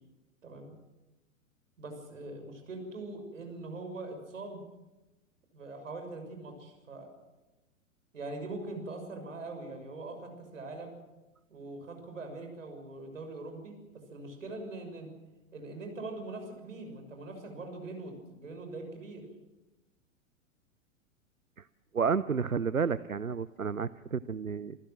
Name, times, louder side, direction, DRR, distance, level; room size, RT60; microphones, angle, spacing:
voice 1, 1.8-4.6 5.5-7.1 8.1-10.9 11.5-13.8 14.1-15.1 15.5-19.3, right 2 dB, 70° right, 5 dB, 6.5 m, -42 dB
voice 2, 21.9-24.8, right 6 dB, 90° right, 17 dB, 0.7 m, -31 dB
27.5 x 16.0 x 7.5 m, 1.1 s
figure-of-eight pair, 105°, 40 cm